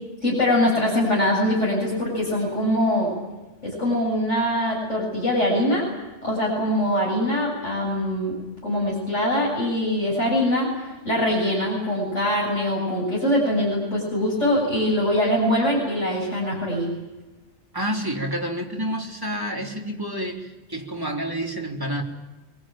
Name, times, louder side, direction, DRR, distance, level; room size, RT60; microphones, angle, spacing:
voice 1, 0.2-3.1 3.6-5.9 6.2-8.4 8.6-10.7 11.0-16.9, left 1 dB, 90° left, -4 dB, 8.1 m, -23 dB
voice 2, 17.7-22.0, equal, 20° right, 0 dB, 3.4 m, -29 dB
26.5 x 22.5 x 9.0 m, 1.1 s
omnidirectional pair, 1.2 m